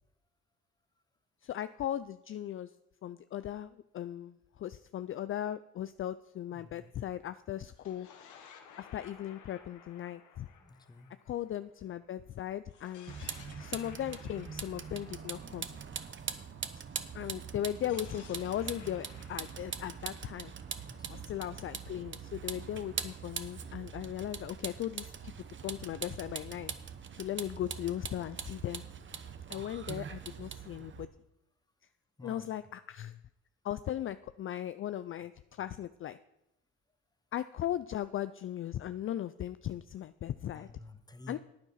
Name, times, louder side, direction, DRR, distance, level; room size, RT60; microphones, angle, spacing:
voice 1, 1.4-2.7 3.0-8.1 8.8-10.5 11.3-15.7 17.1-20.5 21.1-25.3 25.6-26.7 27.2-28.8 29.5-31.1 32.2-33.2 33.6-36.2 37.3-40.7 41.3-41.4, left 11 dB, 45° left, 13 dB, 0.4 m, -38 dB
voice 2, 6.5-6.8 10.6-11.1 20.8-21.2 32.2-32.5 40.5-41.4, left 2 dB, 15° left, 9 dB, 1.1 m, -51 dB
sound 1, 7.7-12.1 12.7-16.6 17.7-21.5, left 7 dB, 80° left, 1.5 m, -57 dB
Vehicle, 13.1-31.1, right 7 dB, 40° right, 0.9 m, -42 dB
9.6 x 9.1 x 5.6 m, 0.89 s
cardioid pair, 90°, 30 cm